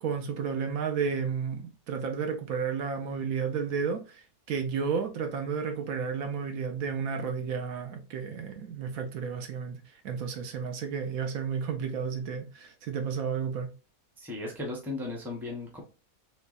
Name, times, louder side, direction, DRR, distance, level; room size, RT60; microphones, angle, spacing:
voice 1, 0.0-4.2 4.5-9.8 10.0-13.7, right 6 dB, 75° right, 1.1 m, -32 dB
voice 2, 14.2-15.8, left 2 dB, ahead, 0.7 m, -36 dB
3.2 x 3.1 x 2.4 m
omnidirectional pair, 1.5 m